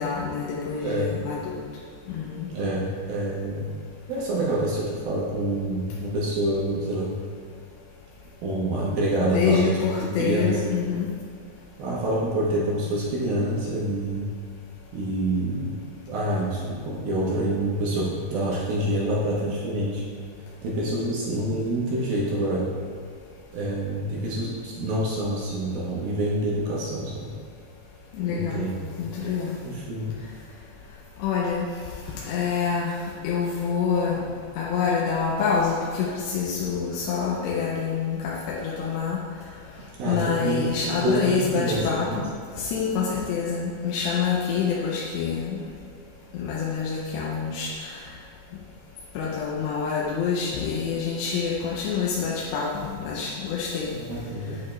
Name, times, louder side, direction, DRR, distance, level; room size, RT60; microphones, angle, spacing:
voice 1, 0.0-1.6 2.1-2.5 9.2-11.1 28.1-28.7 29.0-29.6 31.2-31.7 32.3-32.9 33.2-34.3 34.6-39.2 40.1-42.3 42.6-45.6 46.3-48.0 49.2-54.0, left 6 dB, 80° left, -4 dB, 2.8 m, -26 dB
voice 2, 2.5-3.7 4.1-7.1 8.4-10.6 11.8-14.3 14.9-20.0 20.6-22.7 23.5-27.3 28.3-28.7 29.0-29.1 29.6-30.1 40.0-42.2 53.9-54.6, right 1 dB, 65° right, -5 dB, 2.6 m, -27 dB
8.5 x 8.5 x 3.2 m, 2.1 s
omnidirectional pair, 5.3 m